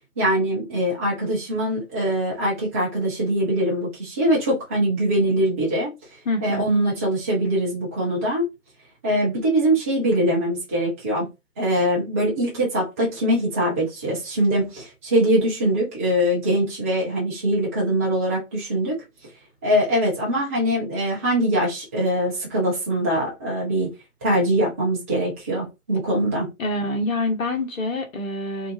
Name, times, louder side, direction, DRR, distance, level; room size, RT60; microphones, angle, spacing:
voice 1, 0.2-5.9 6.4-8.5 9.0-11.3 11.6-18.9 19.6-23.9 24.2-26.5, right 1 dB, 10° right, 0.4 m, -22 dB
voice 2, 6.2-6.6 26.6-28.7, left 2 dB, 65° left, 1.2 m, -26 dB
2.6 x 2.4 x 2.6 m
figure-of-eight pair, 120°, 43 cm